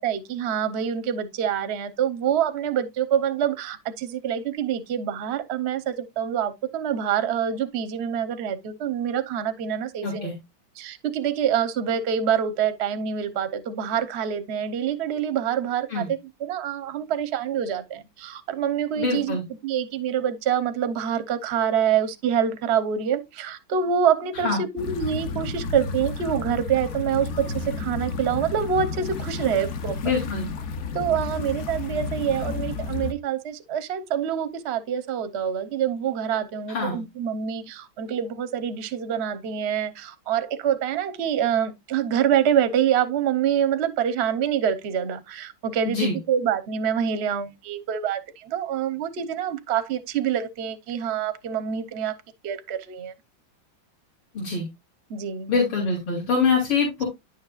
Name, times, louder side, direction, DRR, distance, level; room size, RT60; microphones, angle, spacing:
voice 1, 0.0-10.3 10.8-19.4 19.6-30.0 30.9-52.2 52.4-53.1 55.1-55.5, right 8 dB, 65° right, 0.6 m, -26 dB
voice 2, 10.0-10.3 15.9-16.1 19.0-19.4 24.4-24.6 30.0-30.5 36.7-37.0 45.9-46.2 54.4-54.7 55.5-57.0, left 4 dB, 80° left, 3.5 m, -24 dB
sound 1, 24.8-33.1, left 4 dB, 65° left, 0.7 m, -31 dB
9.6 x 6.5 x 2.4 m
omnidirectional pair, 2.2 m